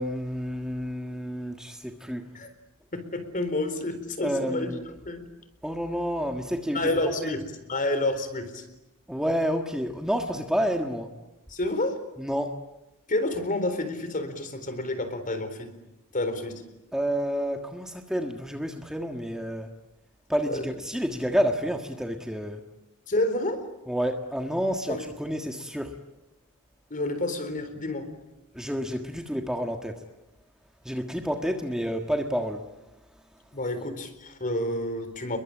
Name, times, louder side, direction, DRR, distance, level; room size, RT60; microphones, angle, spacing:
voice 1, 0.0-2.3 4.2-4.9 5.6-6.8 7.0-7.3 9.1-11.1 12.2-12.5 16.9-19.7 20.3-22.6 23.9-25.9 28.5-30.0 30.8-32.6, equal, 5° right, 3 dB, 1.6 m, -29 dB
voice 2, 2.9-5.2 6.7-8.6 11.5-12.0 13.1-15.7 16.1-16.6 20.4-20.7 23.1-23.6 24.9-25.0 26.9-28.1 33.5-35.4, left 2 dB, 40° left, 10 dB, 4.1 m, -29 dB
29.5 x 22.5 x 8.7 m, 1.0 s
head